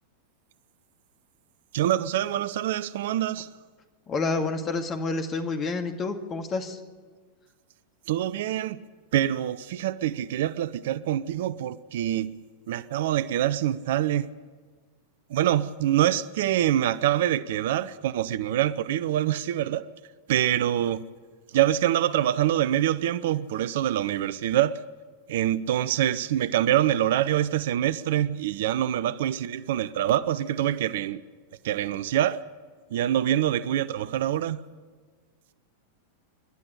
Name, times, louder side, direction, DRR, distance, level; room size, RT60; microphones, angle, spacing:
voice 1, 1.7-3.5 8.1-8.8 9.1-12.3 12.7-14.3 15.3-19.9 20.3-21.0 21.5-24.8 25.3-31.2 31.6-32.4 32.9-34.6, right 12 dB, 55° right, 0.6 m, -25 dB
voice 2, 4.1-6.8, left 3 dB, 25° left, 2.1 m, -29 dB
28.0 x 12.0 x 10.0 m
figure-of-eight pair, 90°, 0 cm